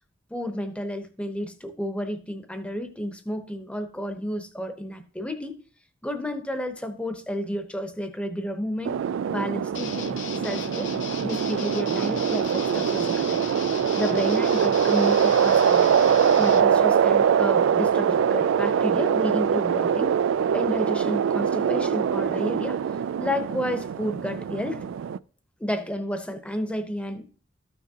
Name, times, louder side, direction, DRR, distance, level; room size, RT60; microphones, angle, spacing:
voice 1, 0.3-5.6 6.0-8.9 9.3-10.9 11.2-13.5 14.0-15.9 16.4-20.2 20.5-22.8 23.2-24.8 25.6-27.2, equal, 5° left, 7 dB, 0.8 m, -31 dB
sound 1, 8.9-25.2, right 8 dB, 75° right, 0.3 m, -23 dB
sound 2, 9.7-16.6, left 6 dB, 65° left, 0.8 m, -37 dB
13.5 x 6.1 x 2.8 m, 0.40 s
head